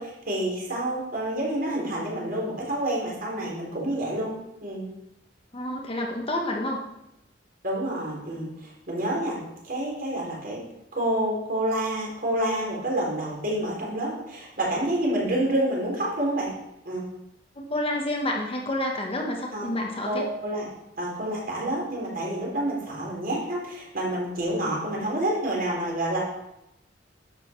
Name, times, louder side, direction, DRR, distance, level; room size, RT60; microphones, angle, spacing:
voice 1, 0.0-4.3 4.6-4.8 7.6-10.6 10.9-16.5 16.9-17.0 19.5-19.7 20.0-20.7 21.0-26.2, right 1 dB, 50° right, -3 dB, 3.9 m, -28 dB
voice 2, 5.5-6.8 17.6-20.2, left 1 dB, 30° left, 0 dB, 1.2 m, -29 dB
11.0 x 8.1 x 4.6 m, 0.86 s
head